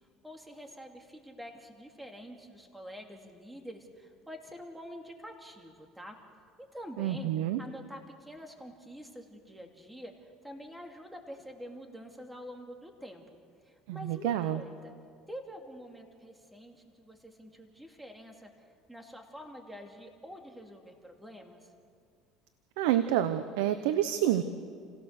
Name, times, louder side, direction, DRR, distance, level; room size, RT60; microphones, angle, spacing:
voice 1, 0.2-6.2 6.6-7.3 7.6-13.3 13.6-14.9 15.3-21.7, equal, 5° right, 3 dB, 2.6 m, -47 dB
voice 2, 7.0-7.6 13.9-14.6 22.8-24.4, right 12 dB, 90° right, 11 dB, 0.9 m, -28 dB
29.0 x 17.0 x 6.7 m, 2.1 s
supercardioid pair, 100°, 0 cm